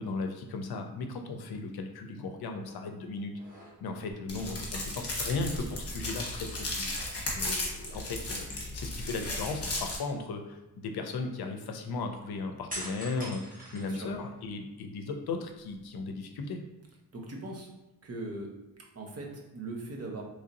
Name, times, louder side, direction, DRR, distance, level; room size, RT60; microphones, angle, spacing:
voice 1, 0.0-3.3 3.8-6.9 7.3-10.6 10.8-16.6, left 3 dB, 80° left, 5 dB, 0.6 m, -36 dB
sound 1, 2.6-2.9 3.3-4.1 5.3-6.6 6.9-7.0 12.7-14.5 15.0-15.9, right 1 dB, 20° right, 1.3 m, -44 dB
sound 2, 4.3-10.0, left 1 dB, 40° left, 1.1 m, -35 dB
voice 2, 13.7-14.1 17.1-17.7 18.0-18.5 18.9-20.2, right 2 dB, 40° right, 0 dB, 0.8 m, -40 dB
3.2 x 2.6 x 3.9 m, 1.0 s
wide cardioid pair, 120°, 38 cm